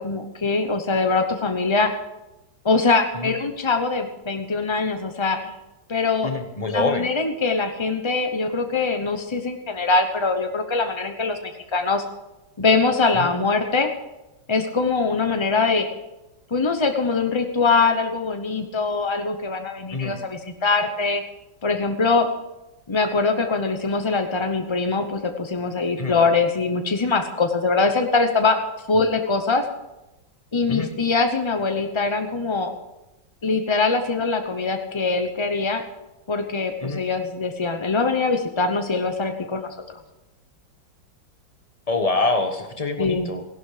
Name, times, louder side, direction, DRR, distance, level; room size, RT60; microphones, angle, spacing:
voice 1, 0.0-1.9 2.6-5.6 5.9-6.3 6.7-12.0 12.6-13.9 14.5-15.9 16.5-21.2 21.6-22.3 22.9-28.6 28.9-29.6 30.5-32.7 33.4-35.8 36.3-39.7 43.0-43.3, left 4 dB, 45° left, 5 dB, 0.3 m, -22 dB
voice 2, 6.2-7.1 13.1-13.3 19.9-20.2 26.0-26.2 30.7-30.9 36.8-37.0 41.9-43.5, left 3 dB, 25° left, 7 dB, 0.9 m, -25 dB
16.5 x 11.5 x 5.0 m, 0.99 s
omnidirectional pair, 2.0 m